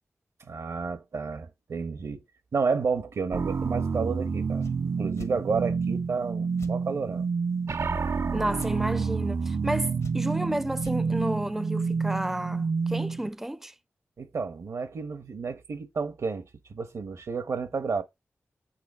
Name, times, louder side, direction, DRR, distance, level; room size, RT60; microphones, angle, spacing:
voice 1, 0.4-2.2 2.5-7.3 14.2-18.0, right 5 dB, 80° right, 1.4 m, -31 dB
sound 1, 3.3-13.3, right 5 dB, 60° right, 0.7 m, -29 dB
sound 2, 4.6-4.8 5.2-5.3 6.6-6.8 8.6-8.7 10.0-10.4 10.8-11.0, left 4 dB, 85° left, 1.3 m, -45 dB
voice 2, 8.3-13.7, right 1 dB, 5° right, 0.4 m, -31 dB
8.2 x 3.3 x 6.2 m
cardioid pair, 45°, 5 cm